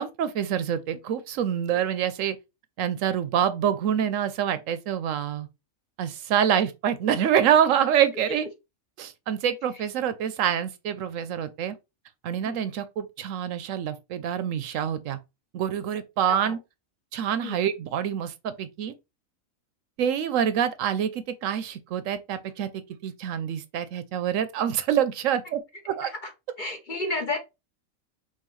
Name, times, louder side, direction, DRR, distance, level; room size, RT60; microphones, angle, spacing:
voice 1, 0.0-2.4 2.8-5.5 6.0-8.5 9.0-11.7 12.2-15.2 15.5-16.6 17.1-18.9 20.0-25.6 25.9-26.1, right 9 dB, 75° right, 0.9 m, -26 dB
voice 2, 26.0-26.3 26.6-27.4, left 2 dB, 45° left, 0.8 m, -32 dB
5.6 x 2.5 x 3.1 m
omnidirectional pair, 1.4 m